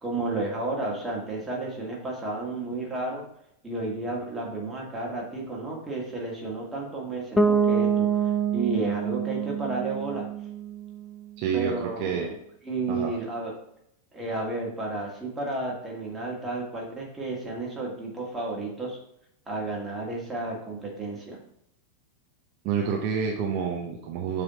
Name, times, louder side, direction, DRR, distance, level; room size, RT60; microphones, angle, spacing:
voice 1, 0.0-3.2 3.6-10.3 11.5-12.3 12.6-13.6 14.1-19.0 19.5-21.4, right 2 dB, 10° right, -3 dB, 1.9 m, -32 dB
Bass guitar, 7.4-11.2, right 5 dB, 10° left, 0.4 m, -26 dB
voice 2, 11.4-12.3 12.9-13.1 22.6-24.4, right 7 dB, 40° right, 0 dB, 0.7 m, -28 dB
7.0 x 3.4 x 4.0 m, 0.75 s
figure-of-eight pair, 90°, 0 cm